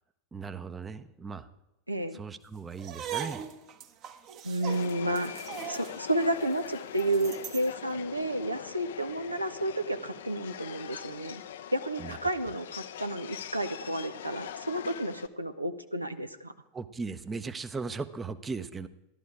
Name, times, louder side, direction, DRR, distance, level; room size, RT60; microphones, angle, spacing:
voice 1, 0.3-1.5 2.1-3.4 12.0-12.2 16.7-18.9, right 4 dB, 15° right, 11 dB, 0.7 m, -37 dB
voice 2, 1.9-2.2 4.4-11.4 11.7-16.5, right 1 dB, 85° right, 9 dB, 0.7 m, -31 dB
sound 1, 2.7-7.7, right 9 dB, 35° right, 1.1 m, -40 dB
Subway metro underground, 4.7-15.3, left 9 dB, 60° left, 0.6 m, -42 dB
14.0 x 12.0 x 4.8 m, 0.89 s
figure-of-eight pair, 90°, 0 cm